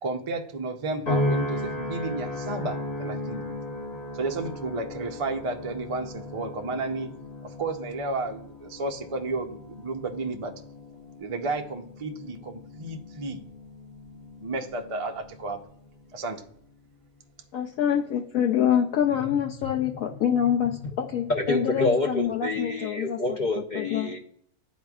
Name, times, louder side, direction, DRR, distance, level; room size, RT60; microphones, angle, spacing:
voice 1, 0.0-3.4 4.1-7.1 7.4-10.6 11.2-13.4 14.4-15.6 16.1-16.4, right 3 dB, 55° right, 4 dB, 0.3 m, -32 dB
sound 1, 1.1-15.5 16.1-16.5, left 1 dB, 90° left, 2.3 m, -35 dB
voice 2, 17.5-23.4 23.7-24.1, left 9 dB, 75° left, 1 dB, 1.0 m, -26 dB
voice 3, 21.3-24.2, left 2 dB, 45° left, 0 dB, 0.6 m, -27 dB
12.0 x 4.1 x 2.3 m, 0.67 s
omnidirectional pair, 1.6 m